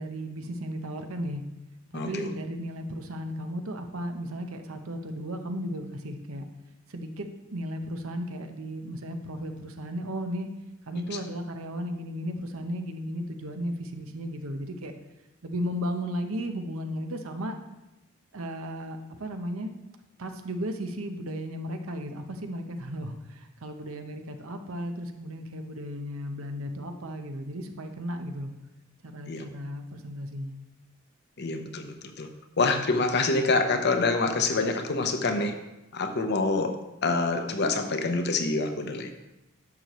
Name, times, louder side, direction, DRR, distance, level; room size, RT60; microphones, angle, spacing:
voice 1, 0.0-1.4 1.9-6.5 6.9-10.5 10.9-14.9 15.4-17.6 18.3-19.7 20.2-28.5 29.0-30.6, equal, 85° right, 6 dB, 0.9 m, -35 dB
voice 2, 1.9-2.3 10.9-11.2 29.3-29.5 31.4-32.3 32.6-35.5 35.9-36.7 37.0-39.1, left 3 dB, 55° left, 6 dB, 0.8 m, -26 dB
10.5 x 6.8 x 3.1 m, 0.98 s
head